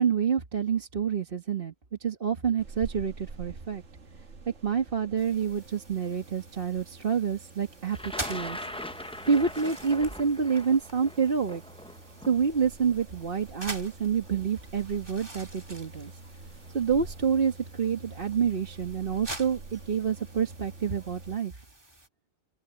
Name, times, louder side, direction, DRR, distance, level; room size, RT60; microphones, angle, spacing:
voice 1, 0.0-1.7 2.0-3.8 4.6-8.7 9.3-11.6 12.3-16.1 16.7-21.5, right 6 dB, 50° right, 1.7 m, -28 dB
sound 1, 2.6-21.4, right 3 dB, 80° right, 1.9 m, -47 dB
sound 2, 5.2-22.1, right 1 dB, 20° right, 2.4 m, -46 dB
Thunder, 7.9-13.9 14.9-15.0 16.1-16.3 16.7-17.1, left 1 dB, 5° left, 0.5 m, -41 dB
open air
omnidirectional pair, 1.2 m